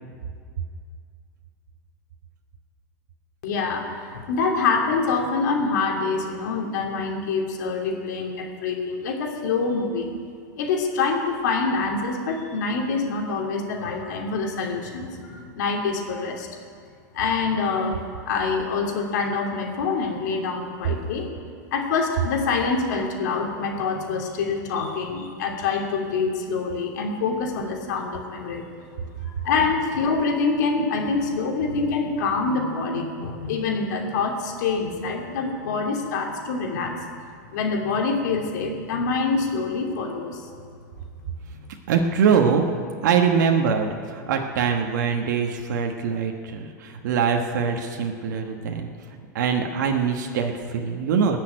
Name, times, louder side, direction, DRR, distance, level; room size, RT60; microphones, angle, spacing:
voice 1, 3.4-10.1 10.6-16.5 17.1-21.3 21.7-28.9 29.2-37.0 37.5-40.5, left 4 dB, 70° left, 1 dB, 2.8 m, -26 dB
voice 2, 41.9-42.6 43.0-48.9 49.3-51.4, right 6 dB, 75° right, 3 dB, 1.3 m, -23 dB
20.0 x 6.8 x 9.0 m, 2.2 s
hypercardioid pair, 115°, 10 cm